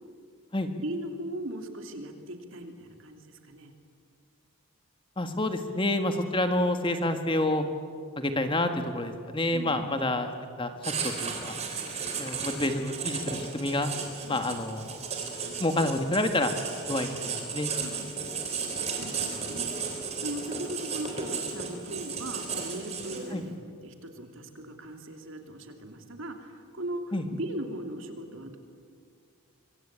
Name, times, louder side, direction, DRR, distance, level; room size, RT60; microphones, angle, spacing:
voice 1, 0.8-3.7 9.5-9.9 14.2-14.4 17.8-18.3 18.9-23.5 23.8-28.6, right 1 dB, 65° right, 5 dB, 3.0 m, -39 dB
voice 2, 5.2-7.6 8.2-10.3 10.6-10.7 11.0-11.6 12.2-13.9 14.3-15.0 15.6-16.5 16.9-17.7 23.3-23.4 27.1-27.2, left 1 dB, 25° left, 7 dB, 1.7 m, -28 dB
Writing, 10.8-23.4, right 5 dB, 30° right, 4.0 m, -34 dB
25.0 x 25.0 x 8.9 m, 2.2 s
head